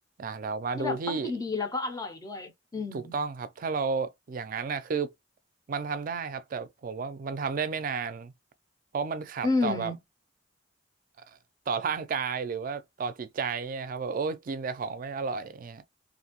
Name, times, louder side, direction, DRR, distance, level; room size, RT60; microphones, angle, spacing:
voice 1, 0.2-1.3 2.9-5.1 5.7-8.3 8.9-9.9 11.7-15.8, right 5 dB, 45° right, 0.4 m, -32 dB
voice 2, 0.8-3.2 9.4-10.0, left 3 dB, 20° left, 0.5 m, -31 dB
2.7 x 2.5 x 2.8 m
head